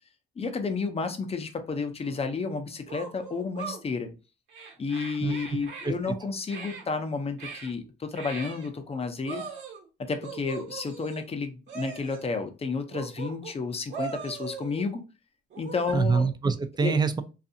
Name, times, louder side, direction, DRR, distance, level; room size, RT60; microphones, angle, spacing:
voice 1, 0.4-4.1 4.8-9.4 10.1-15.0 15.6-16.3 16.8-17.0, left 4 dB, 30° left, 7 dB, 0.5 m, -31 dB
sound 1, 2.0-2.1 2.9-3.8 4.5-5.9 6.5-6.8 7.4-7.7 8.2-8.7 9.3-9.9 10.2-11.3 11.7-12.3 12.9-13.6 13.9-14.9 15.5-15.9, right 5 dB, 70° right, 1.0 m, -40 dB
voice 2, 5.8-6.1 15.9-17.2, right 5 dB, 20° right, 10 dB, 0.3 m, -25 dB
2.6 x 2.4 x 2.6 m, 0.30 s
cardioid pair, 90°, 20 cm